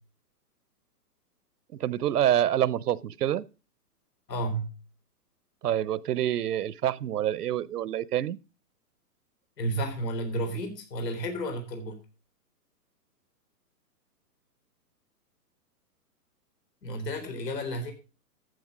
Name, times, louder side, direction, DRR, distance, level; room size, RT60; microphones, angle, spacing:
voice 1, 1.8-3.4 5.6-8.4, right 11 dB, 70° right, 0.7 m, -27 dB
voice 2, 4.3-4.7 9.6-12.0 16.8-17.9, right 1 dB, 85° left, 3.9 m, -32 dB
14.0 x 6.6 x 5.0 m
hypercardioid pair, 170°, 48 cm